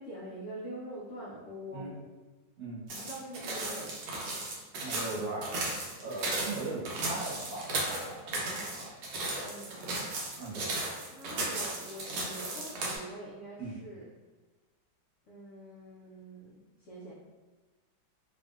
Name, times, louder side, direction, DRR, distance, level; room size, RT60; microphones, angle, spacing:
voice 1, 0.0-1.9 2.8-4.1 6.2-6.4 9.4-10.1 11.1-14.1 15.3-17.1, right 1 dB, 75° left, -7 dB, 0.6 m, -45 dB
voice 2, 1.7-2.0 2.6-2.8 4.7-5.5 6.0-9.0 10.4-10.7 13.6-13.8, right 2 dB, 60° right, -7 dB, 1.3 m, -39 dB
sound 1, 2.9-13.0, right 2 dB, 80° right, 1.3 m, -35 dB
3.0 x 2.6 x 2.3 m, 1.3 s
omnidirectional pair, 1.9 m